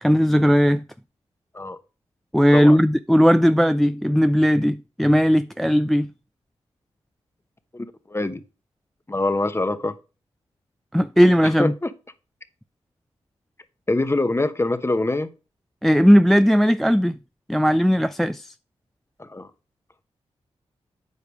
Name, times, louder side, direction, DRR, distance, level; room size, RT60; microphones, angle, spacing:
voice 1, 0.0-0.8 2.3-6.1 10.9-11.7 15.8-17.2 17.5-18.5, equal, ahead, 0.3 m, -17 dB
voice 2, 7.7-8.4 9.1-9.9 11.4-11.9 13.9-15.3 19.2-19.5, left 2 dB, 20° left, 1.0 m, -24 dB
8.3 x 4.8 x 4.9 m
cardioid pair, 45°, 12 cm